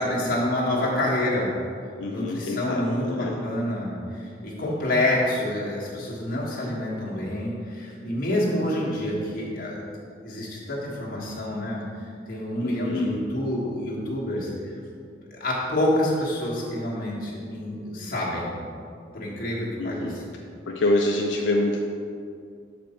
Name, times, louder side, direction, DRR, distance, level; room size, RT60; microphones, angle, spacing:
voice 1, 0.0-1.5 2.1-9.8 10.2-11.8 12.3-14.5 15.3-18.5 19.1-20.3, left 1 dB, 50° left, -6 dB, 1.6 m, -27 dB
voice 2, 2.0-3.4 12.6-13.1 19.8-20.2 20.7-21.8, left 2 dB, 75° left, 0 dB, 0.5 m, -26 dB
6.7 x 5.1 x 4.3 m, 2.3 s
head